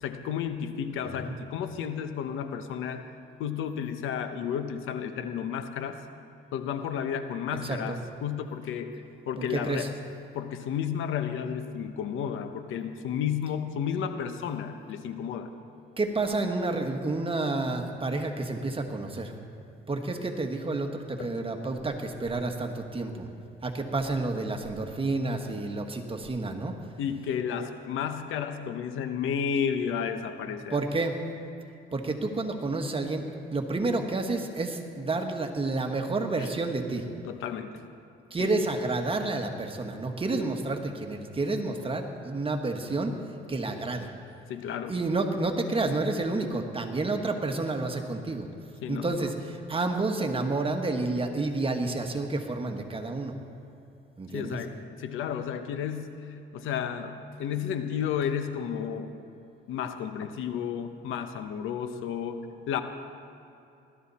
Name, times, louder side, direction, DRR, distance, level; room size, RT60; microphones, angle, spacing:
voice 1, 0.0-3.0 3.4-6.0 6.5-8.9 9.3-9.9 10.3-15.5 27.0-30.8 36.4-36.5 37.2-37.7 38.4-38.5 44.5-45.0 48.8-49.3 54.3-59.1 59.7-62.4 62.7-62.8, left 8 dB, 90° left, 8 dB, 1.0 m, -32 dB
voice 2, 7.6-8.0 9.4-9.9 16.0-19.3 19.9-23.3 23.6-26.7 30.7-31.2 31.9-33.3 33.5-37.0 38.3-43.2 43.5-44.1 44.9-48.5 48.9-53.3 54.2-54.6, right 2 dB, 25° right, 4 dB, 1.6 m, -30 dB
20.5 x 12.5 x 4.2 m, 2.7 s
cardioid pair, 90°, 20 cm